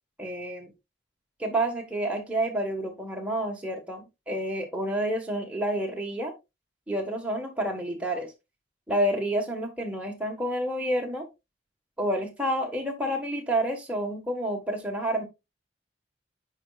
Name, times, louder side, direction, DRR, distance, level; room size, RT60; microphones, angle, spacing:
voice 1, 0.2-0.7 1.4-6.3 6.9-8.3 8.9-11.2 12.0-15.2, right 1 dB, 5° right, 0 dB, 1.4 m, -29 dB
9.6 x 4.4 x 2.4 m, 0.24 s
head